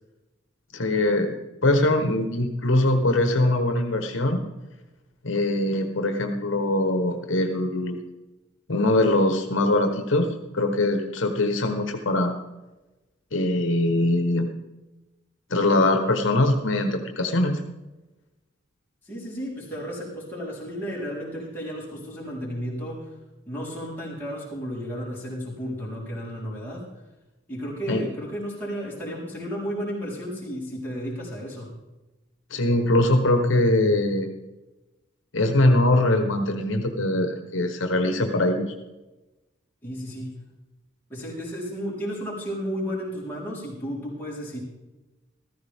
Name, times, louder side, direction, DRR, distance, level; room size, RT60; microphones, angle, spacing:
voice 1, 0.7-1.4 1.6-4.4 5.2-8.0 8.7-12.3 13.3-14.5 15.5-17.6 27.9-28.0 32.5-34.3 35.3-38.7, left 1 dB, 70° left, 4 dB, 1.2 m, -22 dB
voice 2, 19.0-23.1 23.5-26.9 27.5-31.7 39.8-40.4 41.1-44.6, equal, 10° left, -7 dB, 4.0 m, -33 dB
14.5 x 14.0 x 3.6 m, 1.1 s
head